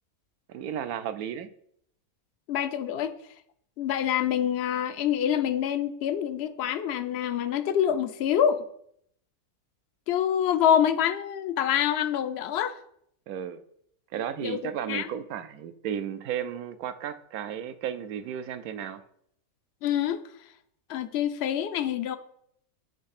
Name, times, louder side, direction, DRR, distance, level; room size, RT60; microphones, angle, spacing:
voice 1, 0.5-1.5 13.3-13.6 14.1-19.0, right 9 dB, 80° right, 11 dB, 1.1 m, -34 dB
voice 2, 2.5-3.1 3.8-8.6 10.1-12.8 14.4-15.1 19.8-20.2 20.9-22.2, left 9 dB, 65° left, 11 dB, 0.7 m, -26 dB
8.6 x 3.3 x 5.8 m, 0.69 s
omnidirectional pair, 1.5 m